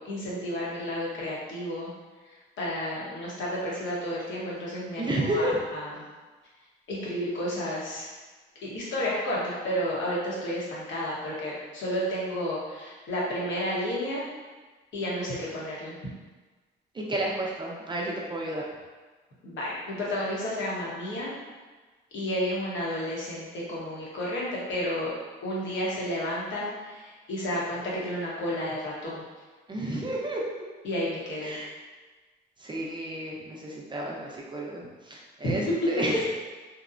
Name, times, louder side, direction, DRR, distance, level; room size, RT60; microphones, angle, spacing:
voice 1, 0.0-1.9 2.6-6.0 6.9-8.1 8.6-14.3 14.9-16.0 19.4-21.3 22.1-25.1 25.4-29.3 30.8-31.6 35.4-35.5, equal, 70° left, -6 dB, 0.9 m, -31 dB
voice 2, 5.0-5.6 16.9-18.7 29.7-30.7 31.4-31.7 32.6-36.2, right 1 dB, 25° right, -3 dB, 0.4 m, -31 dB
2.8 x 2.0 x 2.4 m, 1.3 s
cardioid pair, 90°, 20 cm